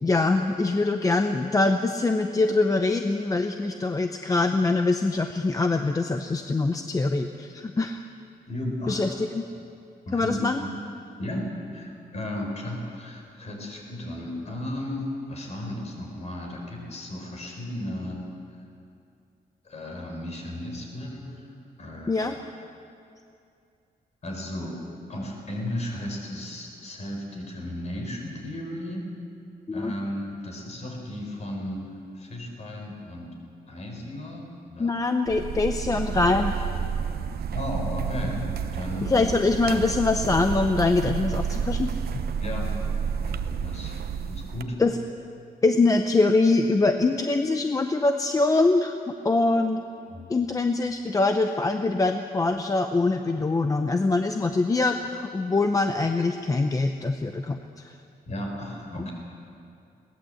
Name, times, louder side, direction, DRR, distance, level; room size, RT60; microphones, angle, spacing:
voice 1, 0.0-8.0 8.9-9.4 10.1-10.6 22.1-22.3 29.7-29.9 34.8-36.6 39.0-41.9 44.8-44.9 45.6-48.9 49.2-49.8 50.3-57.6 57.8-57.9 59.0-59.1, left 3 dB, 20° left, 6 dB, 0.7 m, -23 dB
voice 2, 8.5-9.1 10.1-10.7 11.2-18.2 19.6-22.4 24.2-24.7 25.1-29.1 29.7-33.3 33.7-34.9 37.5-39.2 42.4-44.0 44.2-44.8 50.1-50.4 58.3-59.1, left 1 dB, 45° left, 1 dB, 4.5 m, -35 dB
sound 1, 35.3-44.6, right 7 dB, 75° right, 0.8 m, -30 dB
21.5 x 17.5 x 7.8 m, 2.5 s
wide cardioid pair, 170°, 16 cm